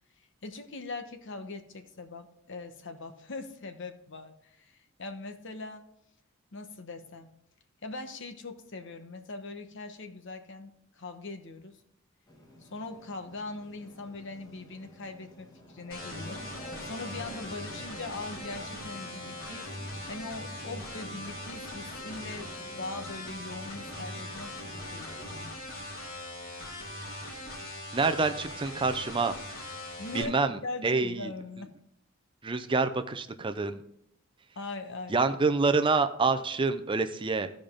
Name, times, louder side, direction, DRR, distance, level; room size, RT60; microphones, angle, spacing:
voice 1, 0.4-5.8 6.5-7.3 7.8-11.8 12.6-16.4 16.8-19.7 20.1-24.6 24.9-25.6 30.0-31.7 34.6-35.2, left 3 dB, 60° left, 7 dB, 1.1 m, -41 dB
sound 1, 12.3-25.5, left 1 dB, 20° left, 1.6 m, -49 dB
sound 2, 15.9-30.2, left 1 dB, 45° left, 2.6 m, -41 dB
voice 2, 27.9-29.4 30.1-31.3 31.6-31.7 32.4-33.8 35.1-37.5, right 4 dB, 25° right, 9 dB, 0.5 m, -27 dB
15.5 x 5.1 x 3.6 m, 0.76 s
head